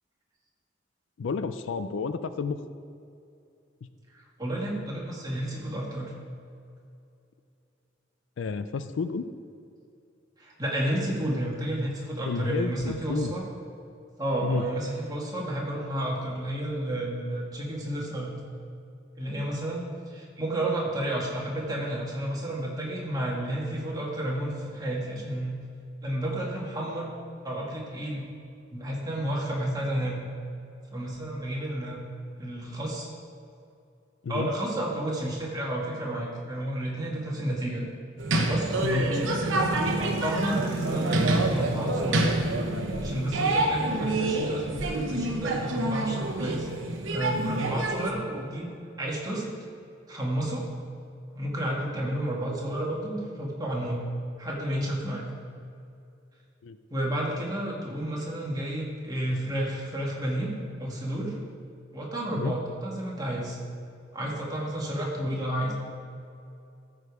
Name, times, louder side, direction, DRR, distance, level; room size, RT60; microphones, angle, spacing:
voice 1, 1.2-2.6 8.4-9.3 12.3-13.3 14.4-14.6 34.2-34.5 38.8-39.1 56.6-56.8 62.4-62.5, left 5 dB, 70° left, 12 dB, 0.4 m, -31 dB
voice 2, 4.1-6.1 10.4-13.4 14.2-18.4 19.2-25.6 26.0-27.1 27.4-28.3 28.7-30.2 30.9-32.0 32.4-33.1 34.3-37.9 38.5-39.7 40.0-42.4 43.0-46.7 47.1-48.7 49.0-49.5 50.1-50.6 51.4-54.0 54.4-55.2 56.9-60.5 60.8-61.4 61.9-63.6 64.1-65.7, right 1 dB, 20° right, -4 dB, 1.8 m, -31 dB
sound 1, 38.2-48.1, right 2 dB, 75° right, 1.0 m, -27 dB
13.5 x 5.1 x 4.8 m, 2.5 s
head